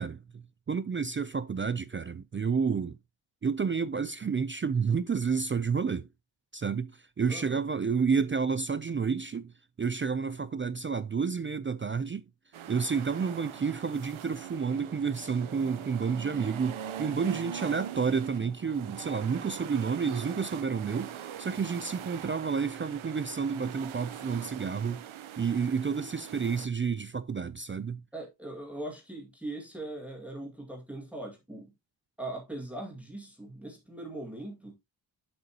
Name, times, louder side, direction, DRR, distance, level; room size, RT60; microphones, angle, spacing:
voice 1, 0.0-3.0 3.4-6.1 6.5-9.5 9.8-12.2 12.7-25.0 25.4-28.0, right 5 dB, 30° right, 0.4 m, -30 dB
voice 2, 7.3-7.6 28.1-31.7 32.2-34.8, right 1 dB, 5° right, 2.1 m, -40 dB
sound 1, 12.5-26.7, right 10 dB, 85° right, 0.9 m, -42 dB
7.8 x 7.6 x 2.8 m
wide cardioid pair, 140°, 47 cm